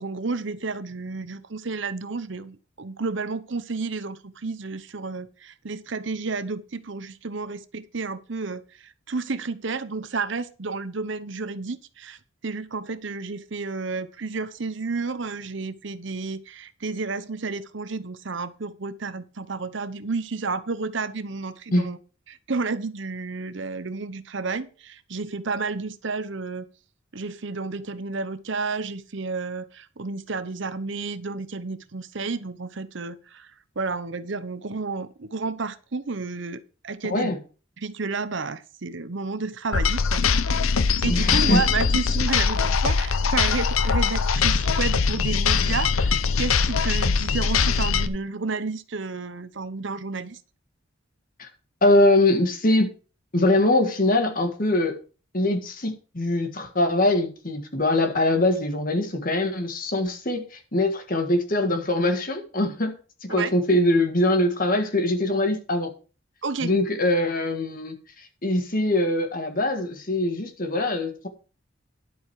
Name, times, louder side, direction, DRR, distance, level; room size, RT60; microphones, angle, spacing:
voice 1, 0.0-12.2 12.4-22.0 22.3-26.7 27.1-33.5 33.8-37.3 37.8-40.2 41.0-50.4 63.3-63.5 66.4-66.7, right 4 dB, 60° right, 0.8 m, -31 dB
voice 2, 37.0-37.4 41.1-41.6 51.4-51.5 51.8-52.9 53.3-55.0 55.3-63.0 63.2-65.9 66.6-71.3, left 1 dB, 45° left, 1.7 m, -23 dB
sound 1, 39.7-48.1, left 5 dB, 85° left, 0.8 m, -22 dB
11.0 x 7.8 x 4.8 m
head